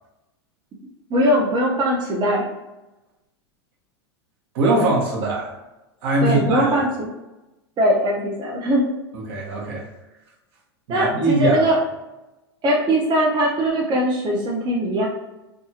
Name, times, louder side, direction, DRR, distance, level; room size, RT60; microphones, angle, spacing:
voice 1, 1.1-2.5 6.2-6.9 7.8-8.9 10.9-11.8 12.6-15.1, equal, 30° right, -3 dB, 0.6 m, -20 dB
voice 2, 4.5-5.5 6.0-6.7 9.1-9.9 10.9-11.6, right 2 dB, 60° right, -2 dB, 0.9 m, -21 dB
2.6 x 2.4 x 2.8 m, 1.0 s
hypercardioid pair, 105°, 14 cm